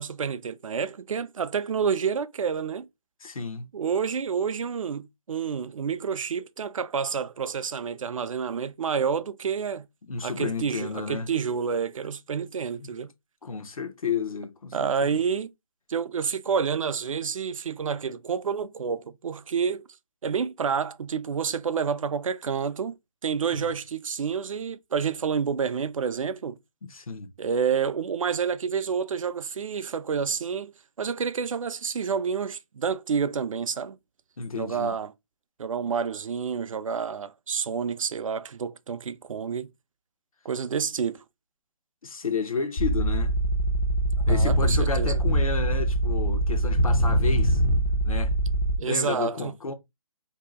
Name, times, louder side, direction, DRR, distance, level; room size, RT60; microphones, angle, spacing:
voice 1, 0.0-2.9 3.7-9.9 10.2-13.1 14.7-15.5 15.9-19.9 20.2-23.0 23.2-26.6 27.4-34.0 34.6-35.1 35.6-39.7 40.4-41.2 44.3-45.2 48.8-49.5, right 6 dB, 70° right, 0.4 m, -29 dB
voice 2, 3.2-3.7 10.1-11.3 12.8-12.9 13.4-15.2 23.5-23.7 26.9-27.3 34.4-34.9 42.0-43.3 44.3-47.6 48.0-48.3 48.8-49.7, left 5 dB, 80° left, 0.7 m, -32 dB
sound 1, 42.8-48.8, right 1 dB, 20° left, 0.3 m, -23 dB
2.7 x 2.4 x 3.4 m
figure-of-eight pair, 155°, 18 cm